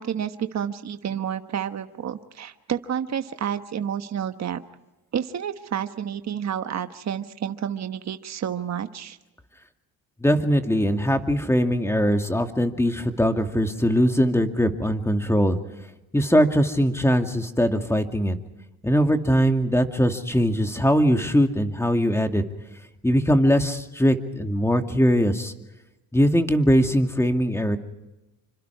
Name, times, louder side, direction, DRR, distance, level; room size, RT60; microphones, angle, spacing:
voice 1, 0.0-4.6 5.1-9.2, right 9 dB, 45° right, 8 dB, 1.3 m, -30 dB
voice 2, 10.2-15.6 16.1-18.4 18.8-22.4 23.0-25.5 26.1-27.8, equal, 5° left, 5 dB, 2.3 m, -21 dB
27.5 x 25.0 x 4.8 m, 0.97 s
cardioid pair, 90°, 38 cm